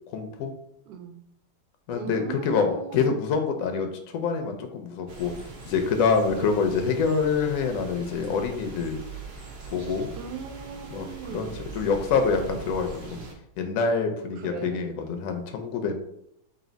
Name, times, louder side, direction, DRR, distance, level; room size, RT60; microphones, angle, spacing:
voice 1, 0.1-0.5 1.9-5.3 5.7-9.0 9.7-10.1 10.9-13.2 13.6-15.9, left 5 dB, 70° left, 5 dB, 0.8 m, -26 dB
voice 2, 0.9-1.2 1.9-3.2 6.4-6.6 10.2-11.6 14.4-14.8, right 6 dB, 80° right, 5 dB, 1.2 m, -38 dB
sound 1, 5.1-13.3, right 4 dB, 60° right, 0.6 m, -42 dB
3.2 x 2.6 x 3.9 m, 0.77 s
omnidirectional pair, 1.8 m